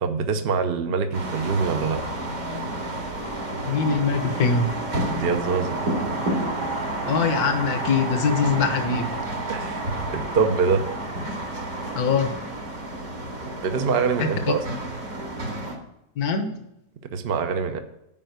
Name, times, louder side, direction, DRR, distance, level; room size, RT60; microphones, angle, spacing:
voice 1, 0.0-2.0 5.2-5.8 9.5-9.8 10.1-10.8 13.4-14.6 17.1-17.8, right 5 dB, 45° right, 7 dB, 0.9 m, -24 dB
sound 1, 1.1-15.8, right 1 dB, 65° right, 2.6 m, -30 dB
voice 2, 3.6-4.7 7.1-9.1 11.9-12.3 14.5-14.6 16.2-16.6, left 5 dB, 75° left, 7 dB, 1.5 m, -22 dB
9.1 x 5.2 x 8.0 m, 0.82 s
omnidirectional pair, 1.6 m